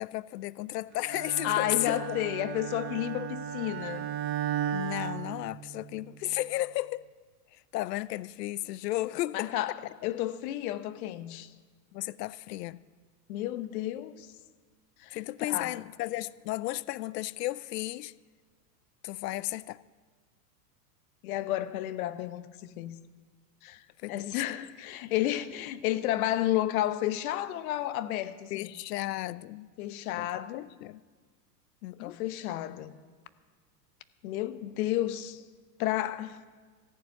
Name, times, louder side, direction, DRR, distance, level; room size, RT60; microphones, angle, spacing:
voice 1, 0.0-2.2 4.7-7.1 7.5-9.5 10.0-10.1 11.9-12.8 15.1-18.1 19.0-19.8 24.0-24.4 28.5-29.7 30.1-31.0 31.8-32.2, left 16 dB, 80° left, 0.6 m, -34 dB
Bowed string instrument, 1.1-6.0, right 10 dB, 25° right, 0.6 m, -35 dB
voice 2, 1.4-4.1 9.3-11.5 13.3-14.3 15.0-15.2 15.5-15.7 21.2-23.0 23.6-23.8 24.1-28.7 29.8-30.7 32.0-32.9 34.2-35.4 35.8-36.4, left 13 dB, 60° left, 1.0 m, -32 dB
14.5 x 7.2 x 9.2 m
supercardioid pair, 130°, 48 cm